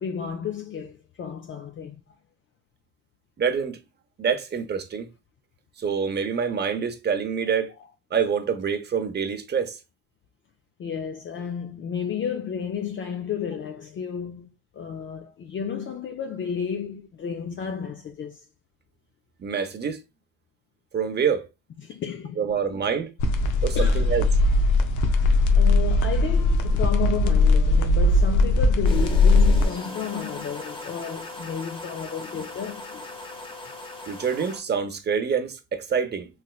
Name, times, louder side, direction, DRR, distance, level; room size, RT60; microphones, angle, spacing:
voice 1, 0.0-2.0 10.8-18.5 21.8-22.8 23.7-24.1 25.5-33.1, left 7 dB, 40° left, 0.4 m, -32 dB
voice 2, 3.4-3.8 4.2-5.1 5.8-7.7 8.1-9.8 19.4-20.0 20.9-21.5 22.4-23.1 23.6-24.3 34.0-36.3, right 6 dB, 35° right, 0.7 m, -26 dB
sound 1, 23.2-29.7, left 2 dB, 85° left, 0.6 m, -19 dB
sound 2, 28.8-34.6, left 2 dB, 15° left, 0.8 m, -38 dB
3.2 x 2.9 x 2.3 m
cardioid pair, 90°, 30 cm